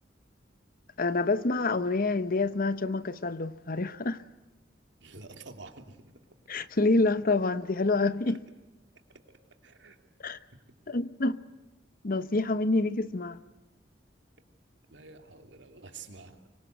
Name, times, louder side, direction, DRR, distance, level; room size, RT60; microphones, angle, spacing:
voice 1, 1.0-4.2 6.5-8.4 10.2-10.4 10.9-11.4 12.0-13.4, left 3 dB, 50° left, 0.9 m, -27 dB
voice 2, 5.0-6.1 8.2-8.3 9.1-9.2 9.6-10.0 14.9-16.4, right 4 dB, 75° right, 3.0 m, -48 dB
25.0 x 24.0 x 8.1 m
head